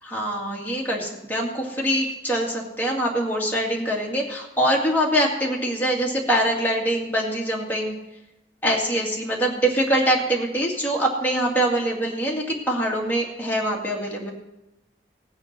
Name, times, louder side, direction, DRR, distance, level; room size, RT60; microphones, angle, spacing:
voice 1, 0.0-8.0 8.6-14.3, right 1 dB, 10° left, -2 dB, 2.2 m, -24 dB
18.0 x 7.2 x 6.7 m, 0.96 s
head